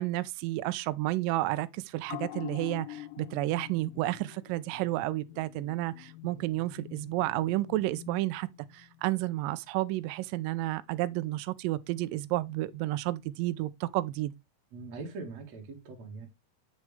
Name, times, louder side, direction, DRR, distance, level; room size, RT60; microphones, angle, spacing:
voice 1, 0.0-14.3, right 17 dB, 75° right, 2.1 m, -31 dB
sound 1, 2.1-9.0 9.3-9.4, left 17 dB, 80° left, 2.2 m, -45 dB
voice 2, 14.7-16.3, right 3 dB, 50° right, 3.1 m, -42 dB
8.5 x 6.5 x 3.3 m
omnidirectional pair, 4.4 m